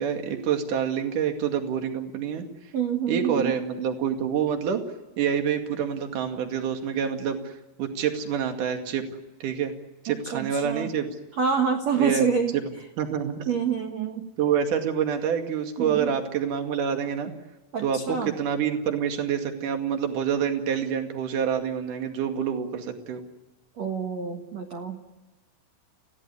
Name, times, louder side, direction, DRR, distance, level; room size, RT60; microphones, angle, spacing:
voice 1, 0.0-2.4 3.1-4.8 5.2-7.5 7.8-9.1 9.4-9.7 10.0-11.1 12.0-12.3 12.5-12.6 13.0-13.5 14.4-17.3 17.8-23.2, right 8 dB, 50° right, 5 dB, 3.1 m, -27 dB
voice 2, 2.7-3.5 10.1-10.9 11.4-12.6 13.5-14.3 15.8-16.1 17.7-18.3 23.8-25.0, right 6 dB, 80° right, 4 dB, 1.5 m, -27 dB
29.5 x 17.0 x 9.6 m, 1.1 s
omnidirectional pair, 5.9 m